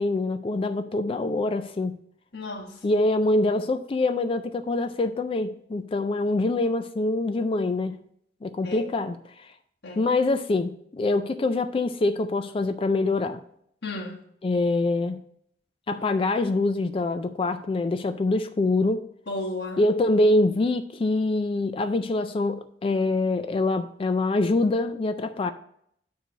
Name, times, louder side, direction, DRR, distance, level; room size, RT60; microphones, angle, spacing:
voice 1, 0.0-2.0 2.8-8.0 8.4-9.5 10.0-13.4 14.4-15.2 15.9-19.0 19.8-25.5, left 2 dB, 30° left, 0.3 m, -25 dB
voice 2, 2.3-3.0 8.6-8.9 9.8-10.1 13.8-14.2 19.3-19.8, left 2 dB, 65° left, 1.5 m, -34 dB
9.2 x 3.2 x 6.4 m
head